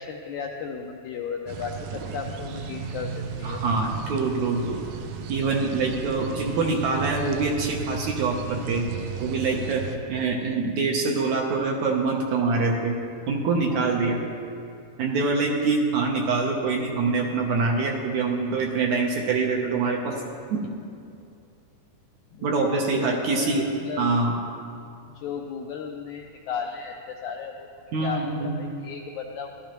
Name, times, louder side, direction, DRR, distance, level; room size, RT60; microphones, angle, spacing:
voice 1, 0.0-3.6 13.7-14.0 22.3-24.0 25.1-27.7 28.0-29.5, left 6 dB, 85° left, 2 dB, 1.7 m, -35 dB
sound 1, 1.5-10.0, right 6 dB, 90° right, 1.5 m, -35 dB
voice 2, 3.4-4.8 5.3-8.9 9.2-9.8 10.1-13.0 13.3-14.2 15.0-20.2 20.5-20.6 22.4-23.6 24.0-24.3 27.9-28.6, right 4 dB, 70° right, 0 dB, 1.9 m, -25 dB
15.0 x 12.0 x 3.0 m, 2.5 s
omnidirectional pair, 4.0 m